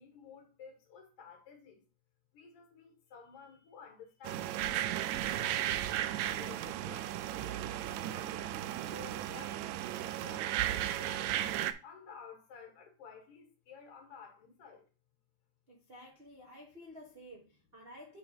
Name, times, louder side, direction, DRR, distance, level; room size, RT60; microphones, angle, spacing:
voice 1, 0.0-1.8 2.3-5.7 6.0-7.3 7.9-11.4 11.8-14.9, left 6 dB, 50° left, 2.4 m, -53 dB
sound 1, 4.2-11.7, right 12 dB, 85° right, 1.6 m, -35 dB
voice 2, 15.7-18.2, equal, 70° right, 0.5 m, -52 dB
7.9 x 4.1 x 4.2 m
omnidirectional pair, 3.7 m